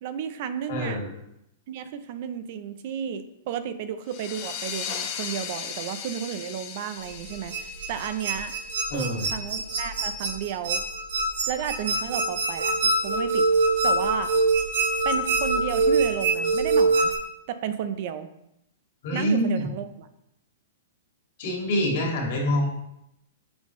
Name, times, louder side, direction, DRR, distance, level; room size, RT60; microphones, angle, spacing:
voice 1, 0.0-1.0 1.7-8.5 8.9-10.8 11.5-13.5 13.8-14.3 15.0-17.1 17.5-18.3 19.1-20.1, right 9 dB, 50° right, 11 dB, 0.5 m, -32 dB
voice 2, 0.7-1.1 8.9-9.3 19.0-19.7 21.4-22.7, equal, 60° left, -1 dB, 2.2 m, -25 dB
sound 1, 4.1-9.4, left 8 dB, 40° left, 0.9 m, -37 dB
sound 2, 7.0-17.1, right 3 dB, 75° right, 1.1 m, -24 dB
6.2 x 5.4 x 3.1 m, 0.82 s
hypercardioid pair, 140°, 0 cm